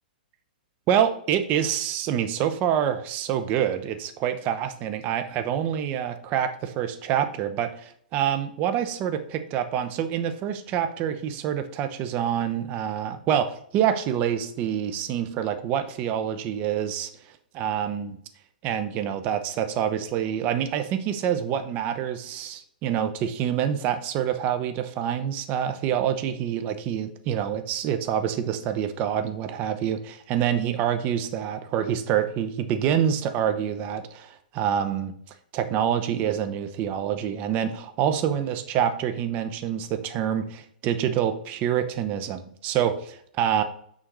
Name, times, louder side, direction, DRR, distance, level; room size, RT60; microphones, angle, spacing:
voice 1, 0.9-17.1 17.6-18.2 18.6-35.1 35.5-43.6, right 9 dB, 35° right, 9 dB, 0.9 m, -26 dB
6.6 x 5.6 x 4.8 m, 0.64 s
hypercardioid pair, 125°, 5 cm